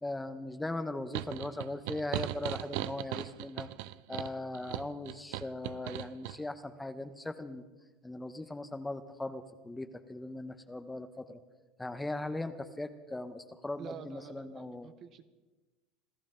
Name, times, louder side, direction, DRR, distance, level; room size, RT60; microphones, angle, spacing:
voice 1, 0.0-3.7 4.1-7.6 8.0-11.4 11.8-14.9, left 2 dB, 10° left, 10 dB, 1.1 m, -39 dB
sound 1, 1.1-6.4, right 15 dB, 70° right, 0.5 m, -38 dB
voice 2, 13.8-15.3, right 7 dB, 45° right, 10 dB, 1.3 m, -48 dB
27.0 x 14.0 x 3.8 m, 1.2 s
supercardioid pair, 95°, 0 cm